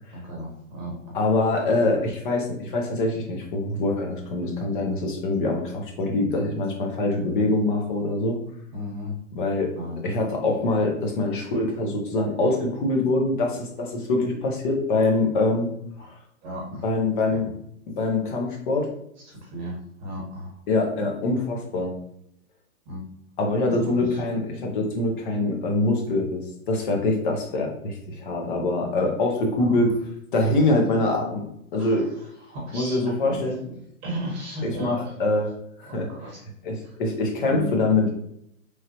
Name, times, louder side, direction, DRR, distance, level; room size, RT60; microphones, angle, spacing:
voice 1, 0.1-1.2 8.7-9.1 9.7-10.0 16.0-16.2 16.4-16.9 17.2-17.5 19.2-20.6 22.8-23.0 23.8-24.2 29.6-29.8 31.7-32.2 32.5-35.1 35.9-36.4 36.8-37.0 37.5-37.7, equal, 30° right, -3 dB, 1.0 m, -35 dB
voice 2, 1.1-8.4 9.3-9.7 10.0-15.7 16.0-16.1 16.8-17.5 18.0-18.9 20.7-21.9 23.4-29.9 30.3-31.5 31.7-32.1 32.7-33.6 34.6-35.5 35.8-36.1 36.6-38.1, left 2 dB, 35° left, 1 dB, 0.7 m, -24 dB
3.2 x 2.3 x 2.8 m, 0.74 s
hypercardioid pair, 145°, 43 cm